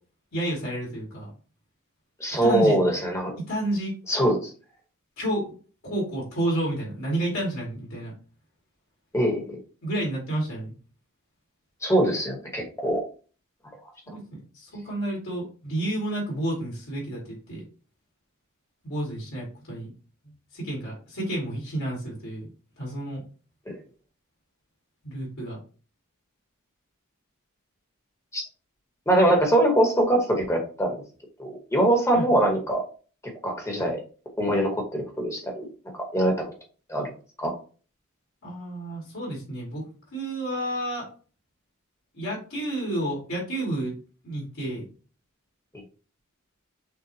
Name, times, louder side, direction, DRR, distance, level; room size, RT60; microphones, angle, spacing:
voice 1, 0.3-1.3 2.3-2.8 3.5-3.9 5.2-5.5 5.8-8.1 9.8-10.7 14.1-14.2 14.5-17.6 18.8-19.9 20.5-22.4 22.8-23.2 25.0-25.6 32.1-32.3 38.4-39.8 40.1-41.1 42.1-43.9 44.2-44.8, right 1 dB, 70° left, -4 dB, 2.3 m, -30 dB
voice 2, 2.2-3.3 4.1-4.5 9.1-9.6 11.8-13.0 23.7-23.8 28.3-28.4 29.1-31.0 31.4-32.8 33.4-34.0 34.4-35.7 35.9-36.3 36.9-37.1 37.4-37.5, right 1 dB, 15° left, 0 dB, 1.3 m, -23 dB
6.5 x 2.5 x 2.7 m, 0.38 s
head